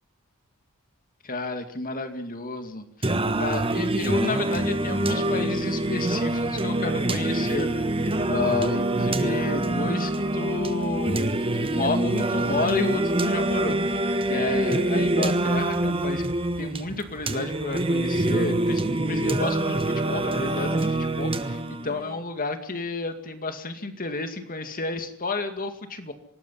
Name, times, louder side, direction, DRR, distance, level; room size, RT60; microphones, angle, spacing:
voice 1, 1.2-11.3 11.5-16.3 16.6-26.1, left 3 dB, 40° left, 7 dB, 2.3 m, -31 dB
Singing, 3.0-22.0, right 1 dB, 25° right, 1.3 m, -25 dB
27.0 x 19.0 x 5.6 m, 0.64 s
head